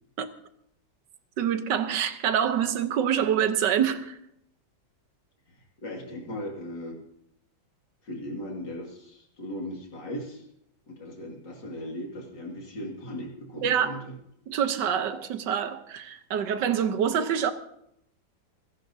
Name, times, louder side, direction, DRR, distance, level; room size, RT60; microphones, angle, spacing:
voice 1, 1.4-4.2 13.6-14.1 14.5-17.5, right 8 dB, 70° right, 1.5 m, -26 dB
voice 2, 5.8-7.0 8.0-10.4 10.9-14.1, equal, 65° left, 2.8 m, -37 dB
28.5 x 11.0 x 2.7 m
omnidirectional pair, 2.1 m